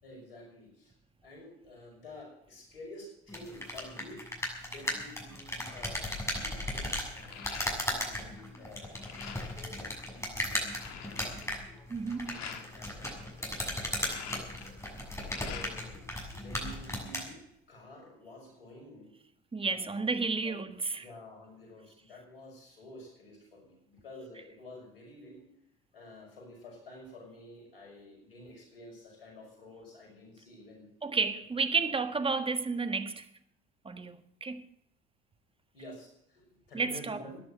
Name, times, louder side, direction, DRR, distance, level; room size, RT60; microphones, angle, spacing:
voice 1, 0.0-0.9 1.2-4.2 4.6-11.4 12.2-14.8 15.4-16.0 16.3-19.1 19.6-20.6 21.0-25.5 25.9-30.9 31.4-31.5 31.7-31.9 35.7-37.4, left 1 dB, 90° left, 6.0 m, -50 dB
sound 1, 3.3-17.3, left 1 dB, 10° left, 6.8 m, -36 dB
sound 2, 5.7-6.0 6.4-8.2 8.5-9.7 10.2-10.3 10.5-12.7 13.7-16.0 16.3-17.2, left 8 dB, 65° left, 2.2 m, -46 dB
voice 2, 11.9-12.4 19.5-21.0 31.0-33.3 33.8-34.6 36.7-37.2, right 4 dB, 20° right, 1.5 m, -31 dB
14.5 x 10.5 x 7.9 m
hypercardioid pair, 65°, 29 cm